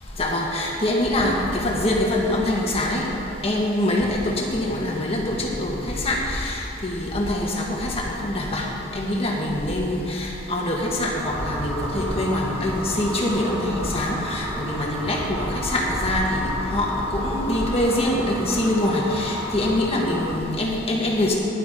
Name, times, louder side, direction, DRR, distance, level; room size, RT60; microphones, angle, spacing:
voice 1, 0.2-3.1 3.4-8.7 8.9-21.4, left 1 dB, 35° left, -2 dB, 1.7 m, -24 dB
sound 1, 11.2-20.4, equal, 10° right, 0.8 m, -32 dB
14.5 x 11.0 x 3.9 m, 2.8 s
head